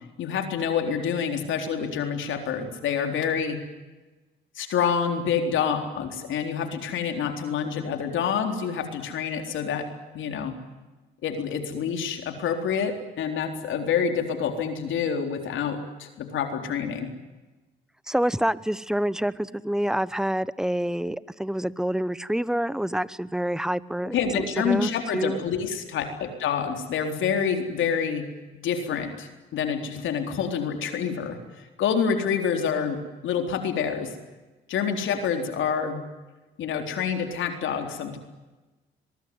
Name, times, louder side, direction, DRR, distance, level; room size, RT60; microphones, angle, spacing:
voice 1, 0.2-3.6 4.6-9.8 10.1-10.5 11.2-17.1 24.1-28.2 28.6-33.0 33.2-34.1 34.7-36.0 36.6-38.2, left 7 dB, 75° left, 5 dB, 3.9 m, -27 dB
voice 2, 18.1-25.4, right 1 dB, 5° right, 18 dB, 0.9 m, -27 dB
23.0 x 22.0 x 9.6 m, 1.2 s
cardioid pair, 90°, 20 cm